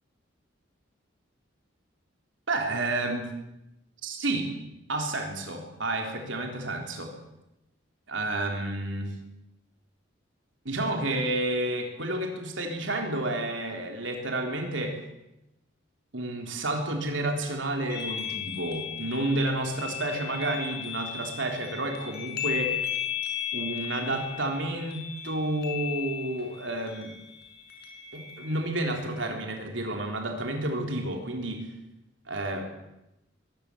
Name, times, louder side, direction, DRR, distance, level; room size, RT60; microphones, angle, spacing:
voice 1, 2.5-3.3 4.0-4.5 4.9-7.1 8.1-9.1 10.7-15.0 16.1-22.8 23.5-27.1 28.1-31.7 32.3-32.7, right 2 dB, 75° right, 3 dB, 3.9 m, -30 dB
sound 1, 17.9-29.3, left 10 dB, 55° left, 6.0 m, -36 dB
22.5 x 18.0 x 8.7 m, 0.93 s
head